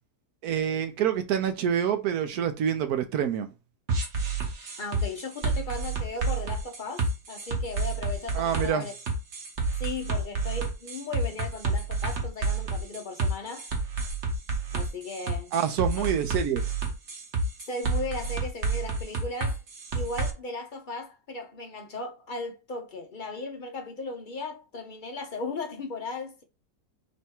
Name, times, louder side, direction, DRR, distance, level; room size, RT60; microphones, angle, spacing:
voice 1, 0.4-3.5 8.3-8.9 15.5-16.7, right 9 dB, 75° right, 1.1 m, -27 dB
sound 1, 3.9-20.3, right 3 dB, 50° right, 1.1 m, -29 dB
voice 2, 4.8-8.9 9.7-13.7 14.7-15.5 16.0-16.1 17.7-19.6 19.9-26.4, left 3 dB, 50° left, 0.6 m, -36 dB
3.4 x 3.0 x 4.3 m
omnidirectional pair, 1.6 m